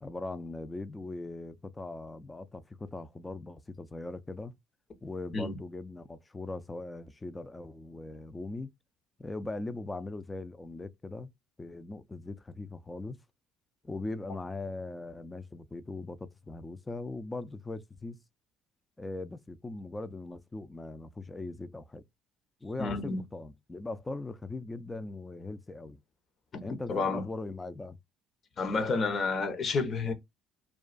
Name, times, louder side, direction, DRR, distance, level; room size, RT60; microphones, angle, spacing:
voice 1, 0.0-4.6 5.0-8.7 9.2-11.3 11.6-13.2 13.8-18.2 19.0-22.0 22.6-26.0 26.6-28.0, left 2 dB, 20° left, 0.4 m, -40 dB
voice 2, 22.8-23.2 26.5-27.3 28.6-30.1, left 4 dB, 45° left, 0.8 m, -30 dB
2.4 x 2.2 x 2.2 m
hypercardioid pair, 60°, 0 cm